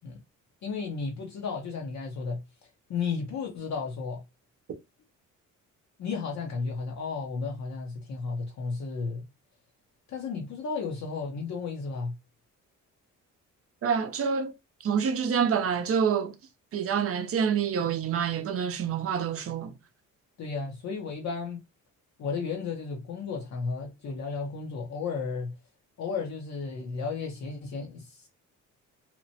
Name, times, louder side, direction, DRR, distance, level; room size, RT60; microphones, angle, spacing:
voice 1, 0.6-2.4 2.9-4.2 6.0-9.3 10.1-12.1 20.4-21.6 22.2-25.6 26.0-28.3, left 4 dB, 55° left, 0.7 m, -33 dB
voice 2, 13.8-14.5 14.8-16.3 16.7-19.7, right 7 dB, 45° right, 0.6 m, -27 dB
2.9 x 2.1 x 2.7 m
cardioid pair, 105°, 32 cm